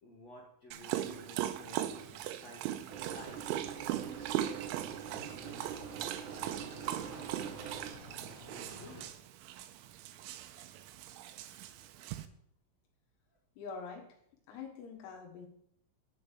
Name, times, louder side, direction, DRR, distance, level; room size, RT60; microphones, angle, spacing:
voice 1, 0.0-9.1, left 1 dB, 60° left, -3 dB, 1.7 m, -54 dB
Dog, 0.7-12.3, right 12 dB, 85° right, 2.8 m, -39 dB
sound 1, 2.9-7.9, right 7 dB, 70° right, 2.9 m, -44 dB
sound 2, 3.3-9.1, left 1 dB, 15° right, 0.9 m, -56 dB
voice 2, 13.6-14.2 14.5-15.5, left 5 dB, 90° left, 1 dB, 4.4 m, -45 dB
10.5 x 5.4 x 8.4 m, 0.70 s
omnidirectional pair, 5.9 m